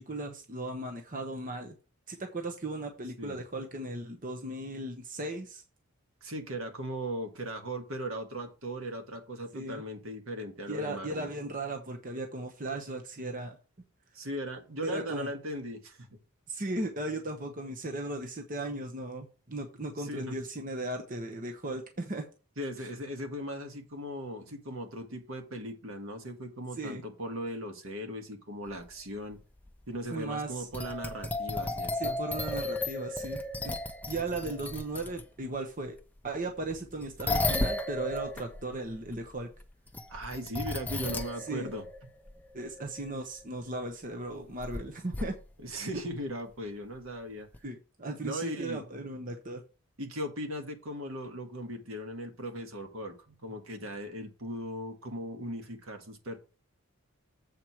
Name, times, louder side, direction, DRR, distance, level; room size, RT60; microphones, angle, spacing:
voice 1, 0.0-1.7 2.1-5.6 9.5-9.8 10.7-13.6 14.8-15.3 16.5-22.3 22.8-22.9 26.8-27.0 30.1-30.7 31.9-33.7 34.1-36.0 36.2-39.5 41.5-41.7 42.5-45.4 47.6-49.6, right 2 dB, 35° right, 3 dB, 0.9 m, -37 dB
voice 2, 6.2-11.3 14.1-16.2 20.0-20.4 22.6-29.4 29.9-32.2 40.1-41.9 45.6-47.5 48.2-48.8 50.0-56.4, equal, 70° right, 5 dB, 1.7 m, -38 dB
sound 1, 28.7-28.8 29.7-29.9 30.7-35.2 36.7-43.4 44.6-44.8 45.1-45.5 47.5-47.6, left 2 dB, 5° left, 0.5 m, -34 dB
7.6 x 4.8 x 5.7 m, 0.34 s
head